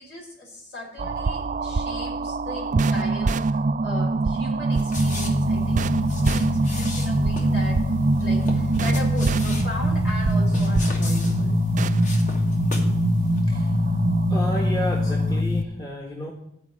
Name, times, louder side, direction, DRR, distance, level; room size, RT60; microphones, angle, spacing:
voice 1, 0.0-11.5, left 1 dB, 60° left, -2 dB, 3.7 m, -38 dB
sound 1, 1.0-15.4, right 3 dB, 40° right, 0.4 m, -24 dB
sound 2, 4.7-13.0 13.3-13.4, left 2 dB, 40° left, 1.8 m, -38 dB
sound 3, 5.0-15.6, left 3 dB, 90° left, 0.8 m, -25 dB
voice 2, 13.4-14.0 14.3-16.3, equal, 20° left, -2 dB, 1.4 m, -31 dB
12.0 x 4.9 x 8.5 m, 0.77 s
head